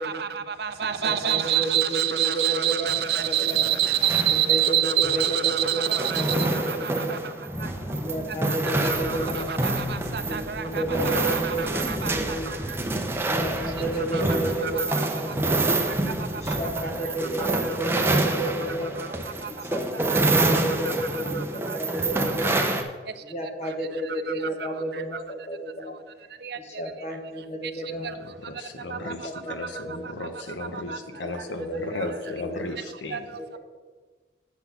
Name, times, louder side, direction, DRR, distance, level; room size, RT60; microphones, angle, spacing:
voice 1, 0.0-6.9 9.4-12.1 14.1-14.2 14.8-14.9 20.3-20.4 26.5-26.6 33.1-33.2, right 11 dB, 60° right, 0.5 m, -26 dB
voice 2, 1.0-3.6 4.3-7.2 7.9-9.5 10.2-12.5 13.2-15.8 16.3-19.0 19.4-22.5 23.3-26.0 26.5-28.1 29.0-30.1 30.8-32.8 33.3-33.6, right 1 dB, 35° left, 1.0 m, -32 dB
sound 1, 2.9-22.8, right 2 dB, 15° right, 0.6 m, -27 dB
Thunder / Rain, 7.4-19.4, equal, 10° left, 1.0 m, -39 dB
voice 3, 28.5-33.3, left 2 dB, 85° left, 0.9 m, -35 dB
8.2 x 4.0 x 7.0 m
head